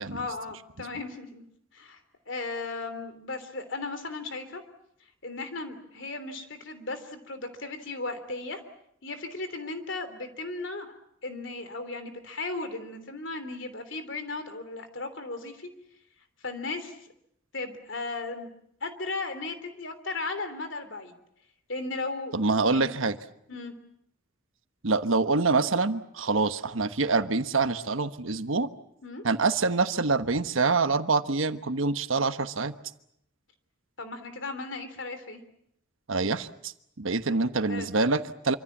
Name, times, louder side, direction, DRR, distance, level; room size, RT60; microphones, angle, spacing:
voice 1, 0.0-1.4 1.7-2.0 2.3-4.6 5.2-8.6 9.0-10.9 11.2-15.7 16.4-17.0 17.5-18.5 18.8-21.2 21.7-22.9 23.5-23.7 29.0-29.2 34.0-35.4 37.3-37.4 37.7-37.9, left 3 dB, 60° left, 9 dB, 3.3 m, -36 dB
voice 2, 22.3-23.2 24.8-28.7 29.2-32.7 36.1-36.7 37.0-38.6, right 3 dB, 75° right, 10 dB, 1.2 m, -26 dB
26.5 x 25.5 x 7.4 m, 0.76 s
head